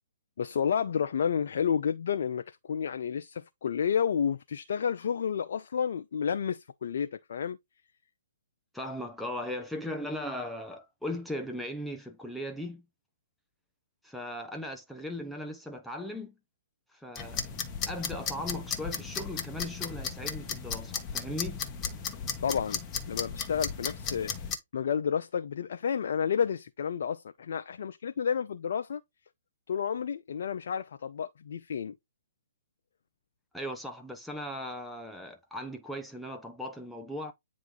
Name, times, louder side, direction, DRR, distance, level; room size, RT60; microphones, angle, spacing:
voice 1, 0.4-7.6 22.4-22.8 23.1-24.3 24.7-29.0 29.7-32.0, left 7 dB, 65° left, 0.5 m, -30 dB
voice 2, 8.7-12.9 14.0-16.3 16.9-17.4 17.9-21.6 33.5-37.3, left 1 dB, ahead, 0.8 m, -38 dB
sound 1, 17.2-24.6, left 6 dB, 20° left, 1.2 m, -35 dB
9.2 x 3.1 x 3.8 m
hypercardioid pair, 140°, 0 cm